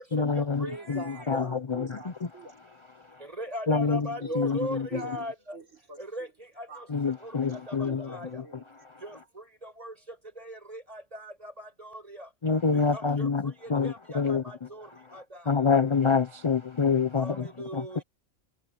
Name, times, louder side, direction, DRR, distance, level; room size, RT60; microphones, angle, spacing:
voice 1, 0.1-1.4 1.7-2.0 3.7-4.0 4.4-4.8 6.9-8.4 12.4-14.4 15.5-17.5 17.7-17.8, left 5 dB, 45° left, 0.4 m, -26 dB
voice 2, 0.6-2.5 3.5-3.6 3.9-4.4 4.9-5.2 5.5-6.0 6.7-6.8 7.5-8.2 8.4-8.6, right 3 dB, 60° right, 3.9 m, -44 dB
voice 3, 3.4-5.3 6.0-6.3 6.6-6.7 7.2-7.3 7.7-8.6 9.0-9.1 9.6-9.9 10.4-12.2 12.9-13.3 13.8-14.9 15.1-15.2 17.2-18.0, equal, 25° right, 6.8 m, -38 dB
omnidirectional pair, 1.4 m